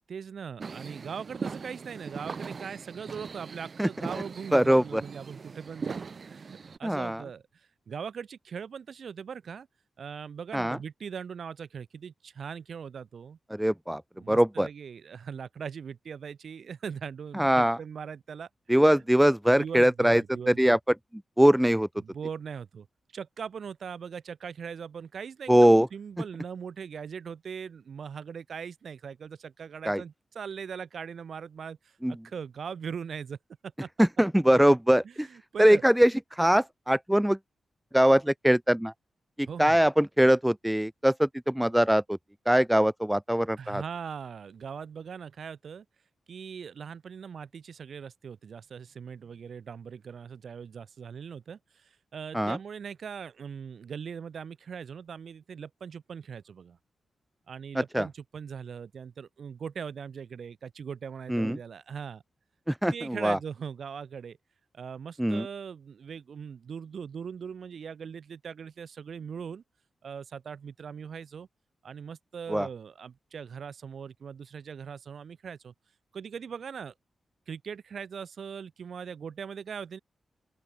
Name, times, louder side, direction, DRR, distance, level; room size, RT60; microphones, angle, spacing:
voice 1, 0.1-6.0 6.3-7.4 7.9-9.7 10.0-13.4 14.2-19.0 19.6-20.8 22.0-22.9 23.1-31.8 32.1-33.4 33.6-34.1 35.0-35.8 39.5-39.8 43.6-45.8 46.3-56.8 57.5-62.2 62.9-64.4 64.7-69.6 70.0-71.5 71.8-75.7 76.1-76.9 77.5-80.0, right 7 dB, 55° right, 7.9 m, -40 dB
sound 1, 0.6-6.8, right 5 dB, 40° right, 1.7 m, -40 dB
voice 2, 4.5-5.0 6.8-7.2 10.5-10.8 13.5-14.0 14.3-14.7 17.3-17.8 18.7-20.8 21.4-21.9 25.5-25.9 29.9-30.0 32.0-32.1 34.0-35.3 35.6-37.4 37.9-38.9 39.4-42.2 42.5-43.8 52.3-52.6 57.9-58.1 61.3-61.6 62.7-63.4 65.2-65.5 72.5-72.7, equal, 5° right, 0.4 m, -22 dB
open air
wide cardioid pair, 175°, 0 cm